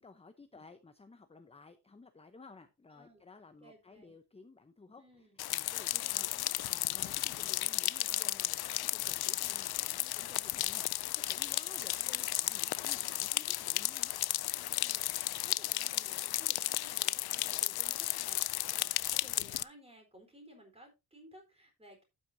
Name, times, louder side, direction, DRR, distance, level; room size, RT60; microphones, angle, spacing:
voice 1, 0.0-14.1 18.7-18.9, left 3 dB, 15° left, 0.8 m, -56 dB
voice 2, 2.9-3.3 3.6-4.1 5.0-5.4 6.1-6.6 12.0-12.3 14.5-22.0, right 1 dB, 15° right, 4.2 m, -57 dB
sound 1, 5.4-19.6, left 15 dB, 75° left, 0.5 m, -34 dB
12.0 x 9.3 x 2.7 m
wide cardioid pair, 135°, 37 cm